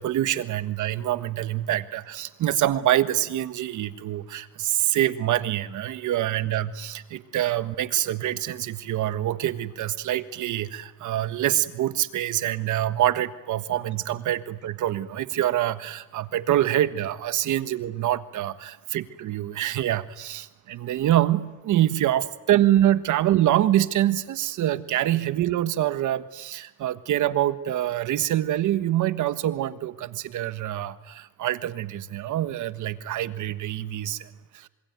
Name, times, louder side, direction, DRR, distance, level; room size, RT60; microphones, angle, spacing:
voice 1, 0.0-34.7, right 12 dB, 80° right, 12 dB, 1.5 m, -25 dB
26.0 x 24.0 x 9.5 m, 1.1 s
cardioid pair, 90°, 30 cm